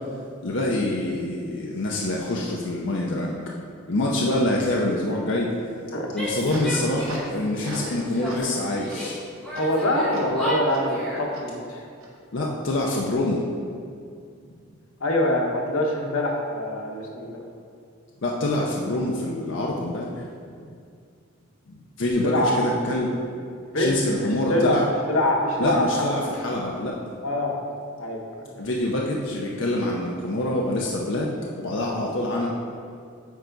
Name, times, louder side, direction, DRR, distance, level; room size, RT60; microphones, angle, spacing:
voice 1, 0.4-3.3 3.9-5.5 6.1-9.2 10.1-10.2 12.3-13.4 18.2-20.3 21.7-23.1 23.8-24.9 25.6-27.1 28.6-31.3 31.6-32.5, left 1 dB, 60° left, -2 dB, 0.7 m, -26 dB
Female speech woman speaking / Yell, 6.1-7.3 7.6-9.1 9.4-11.3, equal, 5° left, 1.9 m, -33 dB
sound 1, 6.1-8.0 8.3-8.5 8.9-9.0 9.5-9.6 10.1-10.2 10.7-10.8 11.3-11.4 12.0-12.1, right 1 dB, 85° right, 1.3 m, -39 dB
voice 2, 9.6-11.8 15.0-17.4 22.2-22.5 23.7-26.2 27.2-27.6 28.0-28.5, left 1 dB, 90° left, 0 dB, 1.2 m, -24 dB
9.3 x 4.6 x 4.0 m, 2.3 s
head